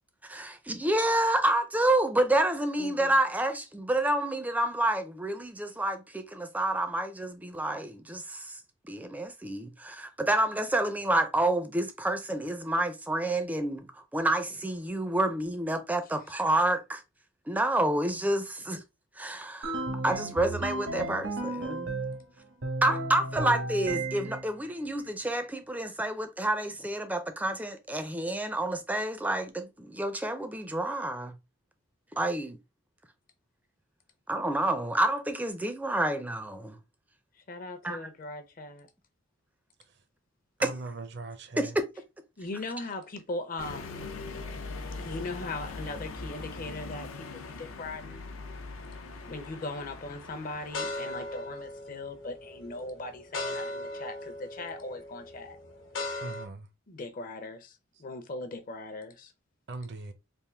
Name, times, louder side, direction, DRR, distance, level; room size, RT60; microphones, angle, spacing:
voice 1, 0.2-17.0 17.5-18.8 19.2-21.9 22.8-31.3 32.2-32.6 34.3-36.8 37.8-38.1 40.6-40.8 41.6-41.8, right 1 dB, 10° right, 0.4 m, -29 dB
voice 2, 2.8-3.2 16.1-16.2 37.5-38.9 42.4-44.1 45.0-48.3 49.3-55.6 56.9-59.3, left 2 dB, 45° left, 0.6 m, -39 dB
sound 1, 19.6-22.2 22.6-24.5, right 2 dB, 75° right, 0.9 m, -33 dB
voice 3, 40.6-41.8 56.2-56.7 59.7-60.1, right 3 dB, 55° right, 0.6 m, -39 dB
sound 2, 43.6-51.4, left 3 dB, 85° left, 0.6 m, -41 dB
sound 3, 49.2-49.6 50.1-56.5, left 2 dB, 70° left, 1.0 m, -38 dB
3.6 x 2.5 x 3.3 m
head